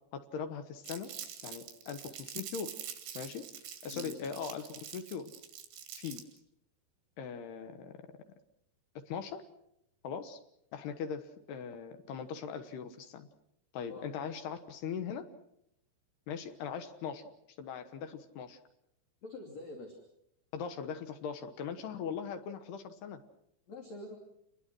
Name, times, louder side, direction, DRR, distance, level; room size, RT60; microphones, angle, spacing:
voice 1, 0.1-1.1 1.4-2.7 3.1-3.5 3.8-5.3 5.9-6.3 7.2-8.0 9.1-9.4 10.0-10.4 10.7-13.3 13.7-15.3 16.3-17.2 17.6-18.6 20.5-23.2, left 7 dB, 70° left, 8 dB, 3.0 m, -40 dB
Crumpling crinkling, 0.8-6.4, right 9 dB, 75° right, 5.0 m, -45 dB
voice 2, 19.2-20.0 23.7-24.2, left 2 dB, 40° left, 2 dB, 3.5 m, -45 dB
29.0 x 21.5 x 6.2 m, 0.77 s
omnidirectional pair, 5.5 m